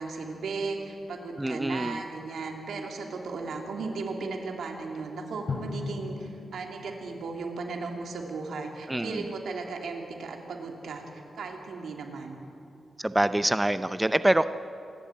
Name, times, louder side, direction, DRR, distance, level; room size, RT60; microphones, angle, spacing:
voice 1, 0.0-11.0 11.3-12.4, right 4 dB, 85° right, 2 dB, 2.8 m, -36 dB
voice 2, 1.4-2.0 8.9-9.2 13.0-14.5, right 1 dB, 10° right, 12 dB, 0.5 m, -25 dB
Drum, 5.5-8.1, left 3 dB, 55° left, 2.7 m, -38 dB
26.0 x 11.5 x 9.2 m, 2.8 s
wide cardioid pair, 120°, 0 cm